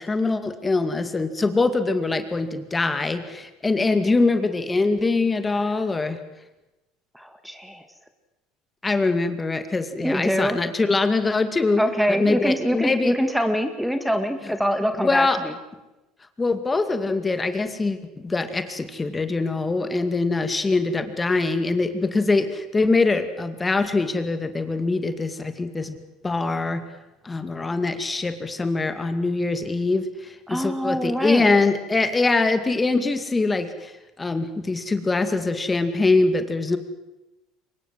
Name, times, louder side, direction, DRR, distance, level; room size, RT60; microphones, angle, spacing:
voice 1, 0.0-6.2 8.8-11.8 12.1-13.1 15.0-15.4 16.4-18.0 18.2-26.0 26.2-26.8 27.2-33.9 34.2-36.8, left 3 dB, 20° left, 9 dB, 2.2 m, -23 dB
voice 2, 7.1-7.9 10.0-10.6 11.8-15.5 30.5-31.5, equal, ahead, 8 dB, 2.1 m, -24 dB
24.0 x 21.0 x 7.7 m, 1.0 s
hypercardioid pair, 85°, 0 cm